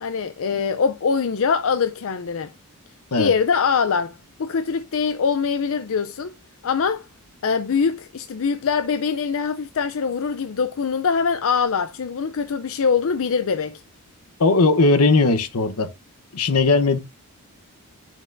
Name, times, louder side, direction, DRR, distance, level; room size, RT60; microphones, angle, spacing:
voice 1, 0.0-2.5 3.2-6.3 6.6-7.1 7.4-13.8, left 5 dB, 65° left, 0.5 m, -23 dB
voice 2, 14.4-15.9 16.3-17.0, left 3 dB, 80° left, 1.0 m, -18 dB
9.2 x 5.9 x 2.6 m
head